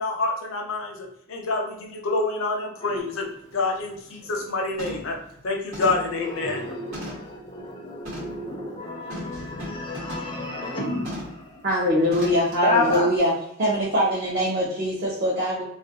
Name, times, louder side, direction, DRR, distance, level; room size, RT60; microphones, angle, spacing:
voice 1, 0.0-5.2 5.4-6.8, left 3 dB, 70° left, 2 dB, 0.5 m, -27 dB
sound 1, 3.0-3.1 3.5-3.8 4.1-4.5 4.8-5.2 5.7-7.4 8.0-8.4 9.1-10.4 11.0-11.4 12.1-12.5 12.9-13.0, left 1 dB, 90° right, 1.1 m, -37 dB
voice 2, 6.2-11.4 12.6-13.1, left 2 dB, 25° left, 0 dB, 0.4 m, -30 dB
voice 3, 11.6-13.3 13.6-15.6, equal, 45° right, -6 dB, 0.5 m, -23 dB
2.3 x 2.1 x 2.7 m, 0.75 s
head